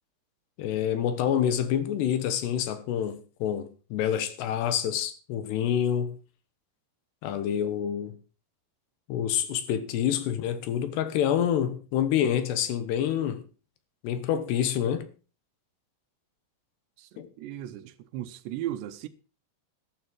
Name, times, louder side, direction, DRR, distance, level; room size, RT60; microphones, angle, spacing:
voice 1, 0.6-6.2 7.2-8.2 9.1-13.4 14.0-15.1 17.2-17.3, left 9 dB, 75° left, 3.1 m, -27 dB
voice 2, 17.4-19.1, right 12 dB, 80° right, 3.0 m, -36 dB
12.5 x 12.0 x 4.6 m
omnidirectional pair, 5.2 m